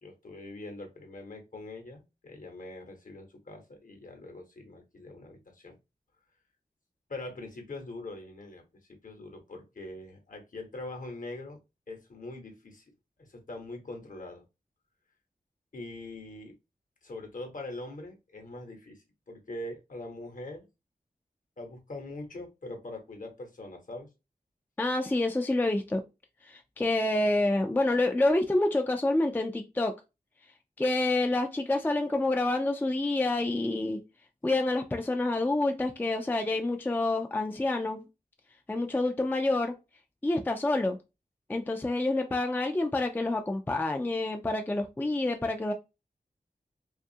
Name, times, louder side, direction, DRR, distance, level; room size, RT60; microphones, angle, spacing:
voice 1, 0.0-5.8 7.1-8.6 9.0-11.6 11.9-12.8 13.2-14.4 15.7-16.5 17.0-20.7 21.6-24.1, left 2 dB, 55° left, 0.9 m, -42 dB
voice 2, 24.8-26.0 26.5-29.9 30.8-34.0 34.4-38.0 38.7-39.7 40.2-41.0 41.5-45.7, left 2 dB, 10° left, 0.3 m, -28 dB
2.6 x 2.3 x 2.6 m
wide cardioid pair, 65°, 16 cm